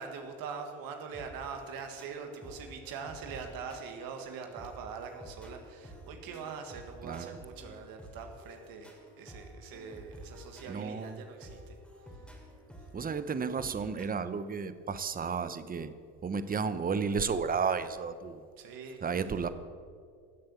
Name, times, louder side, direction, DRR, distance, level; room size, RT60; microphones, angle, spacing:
voice 1, 0.0-11.8 12.1-12.2 18.6-19.4, right 5 dB, 65° right, 5 dB, 1.7 m, -43 dB
sound 1, 1.1-14.1, equal, 5° left, 3.0 m, -51 dB
voice 2, 10.7-11.1 12.9-15.9 16.2-18.4 19.0-19.5, right 5 dB, 25° right, 13 dB, 0.9 m, -32 dB
15.5 x 7.8 x 7.0 m, 2.1 s
supercardioid pair, 95°, 36 cm